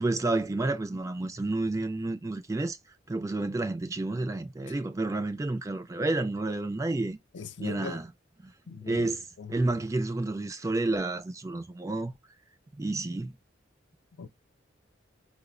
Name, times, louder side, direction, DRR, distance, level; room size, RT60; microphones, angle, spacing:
voice 1, 0.0-2.8 3.1-7.2 7.6-8.1 8.4-8.5 8.9-12.1 12.8-13.3, right 2 dB, 15° right, 0.3 m, -30 dB
voice 2, 7.3-8.0 8.7-9.6 14.2-14.3, left 5 dB, 60° left, 0.4 m, -40 dB
4.9 x 2.0 x 2.4 m
head